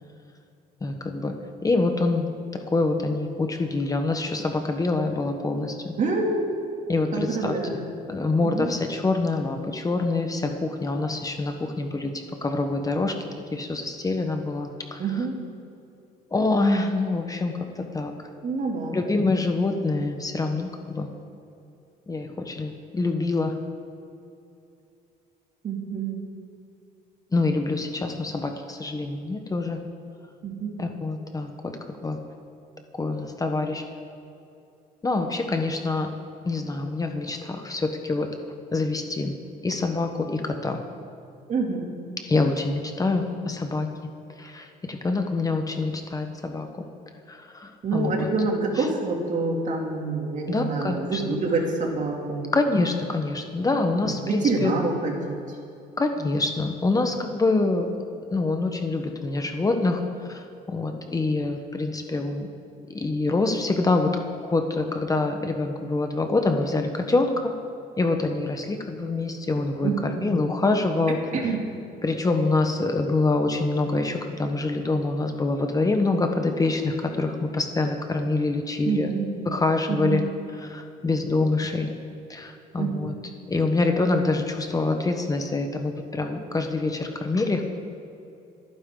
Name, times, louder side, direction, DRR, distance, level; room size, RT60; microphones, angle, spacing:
voice 1, 0.8-1.3 1.6-2.3 2.7-5.9 6.9-7.6 8.1-13.2 13.5-15.0 16.3-17.5 17.9-18.1 18.9-21.1 22.1-23.6 27.3-29.8 30.8-31.8 32.0-32.2 33.0-33.8 35.0-36.1 36.4-38.3 38.7-39.3 39.6-40.8 42.2-43.9 44.4-46.7 47.3-48.3 48.8-48.9 50.5-51.2 52.5-54.7 56.0-57.9 58.3-62.5 62.9-64.1 64.4-67.5 68.0-69.9 70.2-71.2 72.0-79.1 79.5-80.2 80.6-81.9 82.3-83.1 83.5-87.7, left 3 dB, 20° left, 5 dB, 1.2 m, -25 dB
voice 2, 6.0-6.8 7.1-7.9 8.4-8.7 15.0-15.4 18.4-19.0 25.6-26.2 30.4-30.7 41.5-41.9 47.8-52.5 54.0-55.6 69.8-70.1 71.1-71.7 78.8-79.3 79.9-80.2 82.8-83.1, right 3 dB, 45° right, 0 dB, 2.9 m, -27 dB
27.5 x 9.7 x 3.9 m, 2.6 s
cardioid pair, 110°, 17 cm